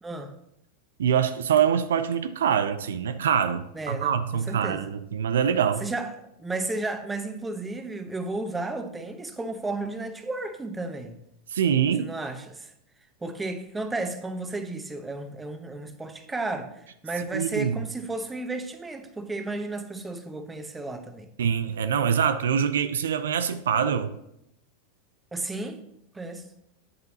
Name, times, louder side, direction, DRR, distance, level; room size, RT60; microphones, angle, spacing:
voice 1, 0.0-0.3 3.7-4.8 5.8-11.2 12.0-12.7 13.2-21.3 25.3-25.8 26.1-26.5, right 2 dB, 15° right, 7 dB, 0.9 m, -33 dB
voice 2, 1.0-5.9 11.5-12.1 17.3-17.8 21.4-24.1, right 8 dB, 85° right, 11 dB, 0.5 m, -24 dB
8.0 x 7.7 x 2.8 m, 0.80 s
hypercardioid pair, 105°, 0 cm